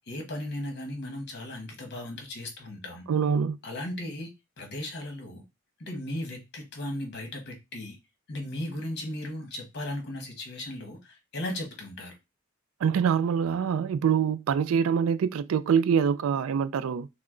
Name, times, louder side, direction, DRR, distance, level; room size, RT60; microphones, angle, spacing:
voice 1, 0.1-3.1 3.6-4.3 4.6-5.4 5.8-8.0 8.3-12.1, left 1 dB, 50° left, 1.3 m, -36 dB
voice 2, 3.1-3.6 12.8-17.1, right 7 dB, 70° right, 0.3 m, -25 dB
5.7 x 2.1 x 3.7 m
head